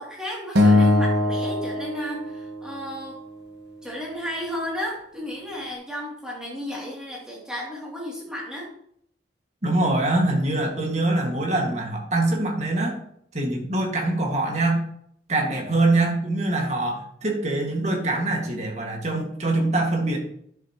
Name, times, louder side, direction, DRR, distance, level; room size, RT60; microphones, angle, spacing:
voice 1, 0.0-3.2 3.8-8.7, left 1 dB, 5° right, -4 dB, 2.9 m, -33 dB
Acoustic guitar, 0.6-2.9, left 2 dB, 75° right, 1.3 m, -21 dB
voice 2, 9.6-13.0 13.3-14.8 15.3-20.2, right 2 dB, 40° right, 1 dB, 2.0 m, -24 dB
10.5 x 7.4 x 3.1 m, 0.68 s
head